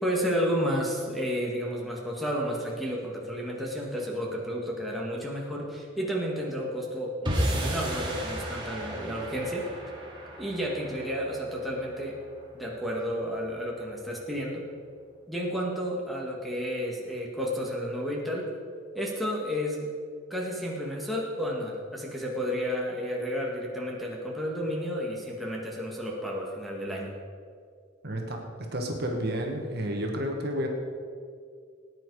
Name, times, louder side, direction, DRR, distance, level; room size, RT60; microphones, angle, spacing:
voice 1, 0.0-9.6 10.4-12.1 12.5-14.6 15.3-18.5 18.9-19.9 20.3-27.1, equal, ahead, -2 dB, 1.9 m, -31 dB
sound 1, 7.3-13.6, equal, 25° right, 2.4 m, -34 dB
voice 2, 28.0-28.4 28.7-30.7, equal, 50° right, 1 dB, 1.7 m, -30 dB
19.0 x 9.7 x 4.9 m, 2.2 s
head